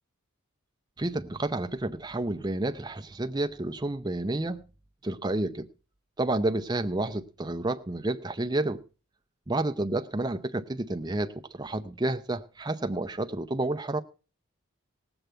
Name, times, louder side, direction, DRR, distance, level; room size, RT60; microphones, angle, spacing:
voice 1, 1.0-4.6 5.0-5.7 6.2-8.8 9.5-14.0, right 2 dB, 20° right, 0.5 m, -30 dB
18.0 x 7.9 x 4.5 m
head